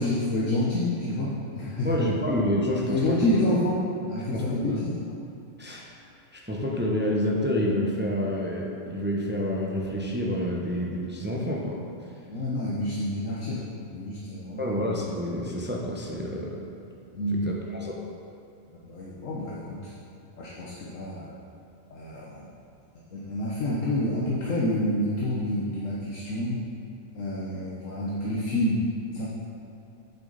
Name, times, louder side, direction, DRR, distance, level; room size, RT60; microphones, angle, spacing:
voice 1, 0.0-1.9 2.8-3.8 4.0-4.9 12.3-14.7 17.1-17.4 18.9-19.9 20.4-21.4 21.9-22.5 23.1-26.6 27.1-28.8 29.1-29.3, left 1 dB, 70° left, -5 dB, 1.4 m, -28 dB
voice 2, 1.8-3.4 4.3-4.8 5.6-5.9 6.3-11.8 14.6-16.6 17.3-17.9, equal, 10° right, -2 dB, 0.6 m, -28 dB
8.1 x 7.6 x 4.0 m, 2.6 s
omnidirectional pair, 1.4 m